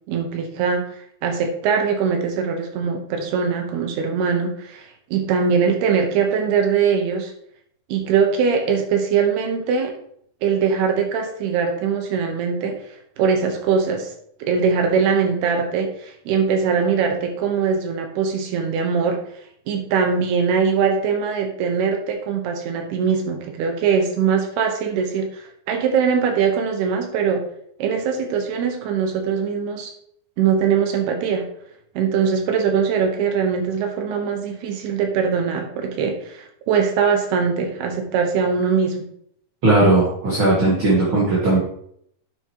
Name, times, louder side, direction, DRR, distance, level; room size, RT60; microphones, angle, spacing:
voice 1, 0.1-7.3 7.9-9.9 10.4-14.1 14.4-19.2 19.7-27.4 27.8-29.9 30.4-31.4 32.0-39.1, right 6 dB, 80° right, 4 dB, 3.1 m, -21 dB
voice 2, 39.6-41.6, right 2 dB, 40° right, -5 dB, 2.2 m, -17 dB
9.3 x 7.9 x 3.0 m, 0.67 s
omnidirectional pair, 4.6 m